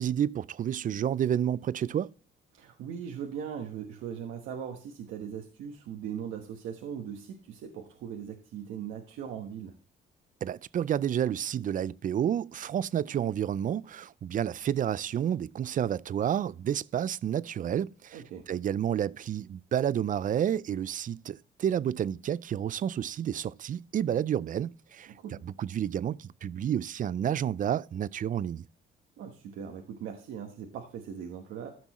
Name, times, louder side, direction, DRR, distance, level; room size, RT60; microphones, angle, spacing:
voice 1, 0.0-2.1 10.4-18.2 18.5-25.1 25.4-28.6, right 9 dB, 40° right, 0.4 m, -30 dB
voice 2, 2.5-9.7 18.1-18.5 25.1-25.4 29.2-31.8, right 8 dB, 85° right, 1.2 m, -39 dB
14.0 x 6.1 x 3.0 m
cardioid pair, 90°, 20 cm